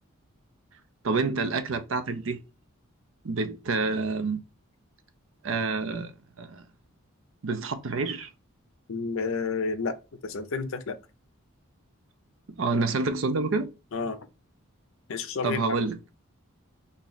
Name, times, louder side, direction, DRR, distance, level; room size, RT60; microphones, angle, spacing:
voice 1, 1.0-2.4 3.2-4.4 5.4-6.1 6.4-6.6 7.4-8.3 12.5-13.7 15.4-16.0, right 3 dB, 65° right, 0.5 m, -28 dB
voice 2, 8.9-10.0 10.2-11.0 13.9-14.3 15.1-15.6, left 4 dB, 65° left, 0.5 m, -30 dB
3.0 x 2.8 x 4.0 m
head